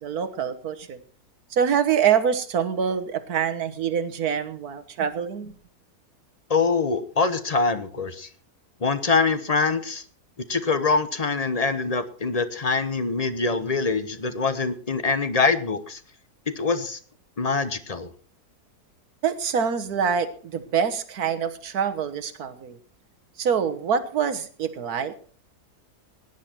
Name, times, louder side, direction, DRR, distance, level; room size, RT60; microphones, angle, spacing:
voice 1, 0.0-1.0 1.5-5.5 19.2-22.8 23.4-25.1, right 7 dB, 65° right, 10 dB, 1.7 m, -25 dB
voice 2, 6.5-8.3 8.8-10.0 10.5-16.0 16.6-17.0 17.4-18.1, left 4 dB, 30° left, 12 dB, 0.9 m, -24 dB
17.5 x 10.5 x 4.4 m, 0.44 s
omnidirectional pair, 1.7 m